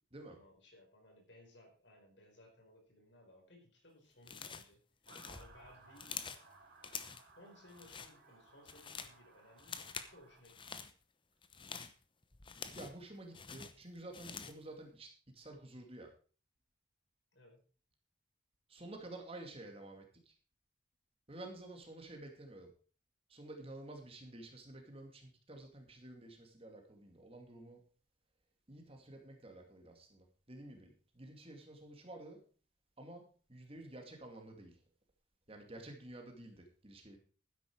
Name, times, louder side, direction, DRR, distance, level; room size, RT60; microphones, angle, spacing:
voice 1, 0.3-4.8 5.3-6.2 7.3-10.9 17.3-17.6, left 1 dB, 60° left, 2 dB, 4.7 m, -61 dB
sound 1, 4.2-4.7 5.0-6.5 6.8-7.3 7.7-8.1 8.5-9.2 9.6-10.1 10.4-10.9 11.4-13.0 13.3-14.6, left 6 dB, 25° left, 0.9 m, -47 dB
Motor vehicle (road) / Siren, 5.1-10.4, right 3 dB, 50° right, 3.4 m, -61 dB
voice 2, 12.7-16.1 18.7-20.3 21.3-22.7 23.3-27.8 28.7-32.4 33.0-33.2 33.5-34.8 35.5-37.2, right 1 dB, 30° right, 3 dB, 2.4 m, -51 dB
12.5 x 10.0 x 4.7 m, 0.39 s
head